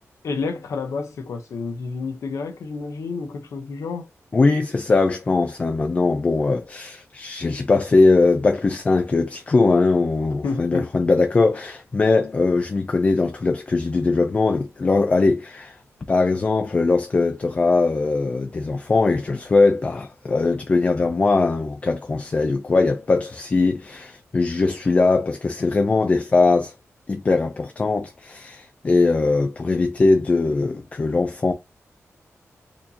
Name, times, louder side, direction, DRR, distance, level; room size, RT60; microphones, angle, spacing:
voice 1, 0.2-4.1 10.4-10.9, left 4 dB, 90° left, 0.8 m, -29 dB
voice 2, 4.3-15.8 16.1-26.7 27.1-31.5, left 3 dB, 30° left, 0.4 m, -20 dB
4.3 x 2.7 x 2.7 m
wide cardioid pair, 175°, 5 cm